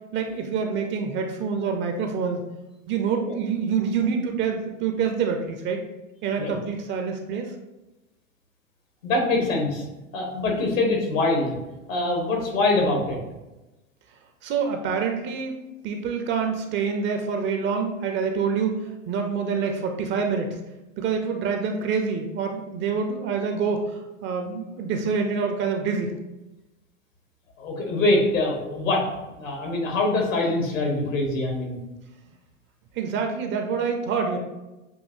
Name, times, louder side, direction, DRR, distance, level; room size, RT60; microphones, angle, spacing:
voice 1, 0.1-2.5 2.9-5.8 6.2-7.5 14.4-15.6 15.8-18.8 19.1-20.6 21.0-26.2 33.0-34.4, right 5 dB, 30° right, 4 dB, 0.5 m, -26 dB
voice 2, 9.0-9.8 10.1-11.6 11.9-13.2 27.6-29.0 29.4-31.8, left 2 dB, 75° left, 0 dB, 1.5 m, -24 dB
7.1 x 2.7 x 2.6 m, 1.0 s
figure-of-eight pair, 85°, 40 cm